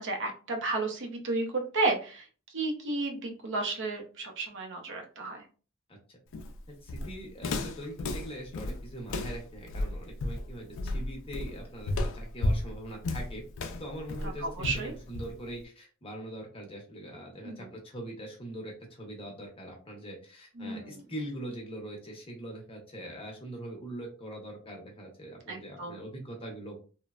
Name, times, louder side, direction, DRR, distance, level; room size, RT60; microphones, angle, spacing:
voice 1, 0.0-2.3 2.5-5.4 14.4-14.9 17.4-17.7 20.6-21.0 25.5-26.0, right 3 dB, 55° right, 2 dB, 0.6 m, -32 dB
Walk footsteps, 6.3-15.6, left 2 dB, 60° left, 0.4 m, -33 dB
voice 2, 6.8-13.4 13.8-26.8, right 1 dB, 25° left, 0 dB, 0.8 m, -42 dB
3.1 x 2.1 x 2.3 m, 0.37 s
head